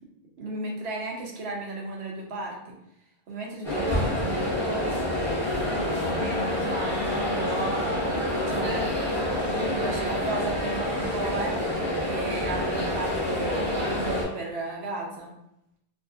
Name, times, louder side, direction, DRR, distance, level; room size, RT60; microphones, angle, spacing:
voice 1, 0.4-2.8 3.3-5.0 5.6-7.9 8.5-9.1 9.8-15.3, right 2 dB, 80° right, -1 dB, 0.9 m, -34 dB
sound 1, 3.6-14.2, left 1 dB, ahead, 0.8 m, -27 dB
2.6 x 2.4 x 2.3 m, 0.79 s
omnidirectional pair, 1.1 m